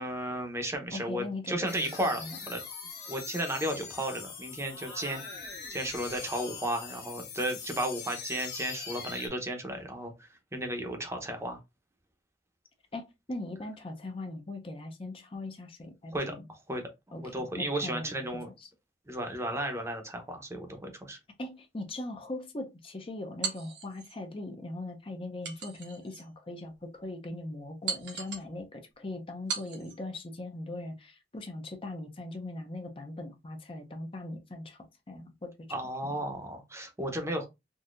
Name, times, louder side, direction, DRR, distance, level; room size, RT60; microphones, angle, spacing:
voice 1, 0.0-2.6 3.1-11.6 16.1-16.8 17.1-18.5 19.1-21.2 35.7-37.5, right 1 dB, 15° right, 0.7 m, -34 dB
voice 2, 0.9-2.4 12.9-16.5 17.1-18.7 21.4-35.5 36.0-36.2, left 2 dB, 30° left, 0.6 m, -40 dB
sound 1, 1.7-9.3, left 5 dB, 60° left, 1.2 m, -42 dB
sound 2, 23.4-24.2 25.4-26.3 26.8-26.9 27.9-28.5 29.5-30.0, right 6 dB, 80° right, 1.2 m, -37 dB
3.8 x 2.7 x 2.4 m
head